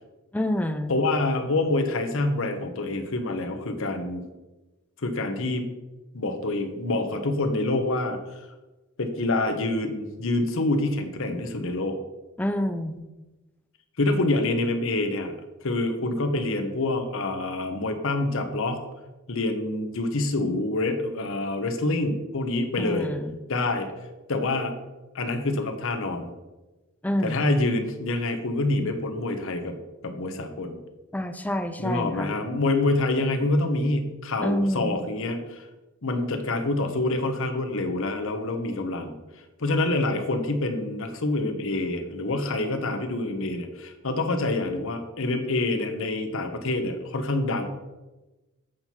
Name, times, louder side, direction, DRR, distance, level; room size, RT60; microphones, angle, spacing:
voice 1, 0.3-1.0 12.4-13.1 22.8-23.4 27.0-27.5 31.1-32.3 34.4-35.0, equal, 5° left, 7 dB, 0.5 m, -28 dB
voice 2, 0.9-4.2 5.0-5.7 6.1-8.4 9.0-12.0 14.0-15.4 15.6-18.8 19.3-23.1 23.5-23.9 24.3-24.7 25.1-26.3 27.2-29.8 30.0-30.8 31.8-35.6 36.0-39.1 39.6-47.7, left 2 dB, 65° left, 6 dB, 0.9 m, -26 dB
7.7 x 5.7 x 4.5 m, 1.1 s
head